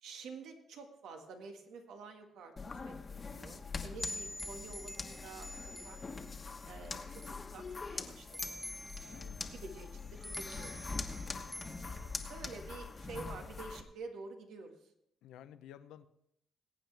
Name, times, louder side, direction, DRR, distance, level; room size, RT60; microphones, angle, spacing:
voice 1, 0.0-5.5 5.8-6.0 6.7-8.6 9.5-11.1 11.5-14.7, right 4 dB, 80° right, 4 dB, 1.7 m, -49 dB
sound 1, 2.6-13.8, left 4 dB, 30° left, 1.2 m, -43 dB
sound 2, 4.0-13.6, left 1 dB, ahead, 0.5 m, -48 dB
voice 2, 9.0-9.4 15.2-16.1, left 10 dB, 90° left, 11 dB, 0.7 m, -53 dB
21.5 x 8.8 x 3.4 m, 0.77 s
cardioid pair, 90°, 0 cm